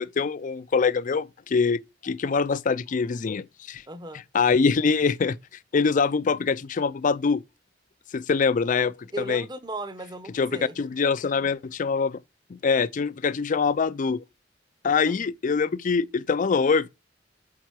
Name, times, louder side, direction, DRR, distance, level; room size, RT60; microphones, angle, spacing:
voice 1, 0.0-3.8 4.3-5.4 5.7-7.4 8.1-9.4 10.3-10.5 10.8-12.2 12.5-14.2 14.8-16.9, left 5 dB, 40° left, 0.4 m, -24 dB
voice 2, 3.9-4.2 9.1-10.7 15.0-15.3, right 2 dB, 20° right, 0.9 m, -36 dB
8.7 x 4.5 x 4.7 m
head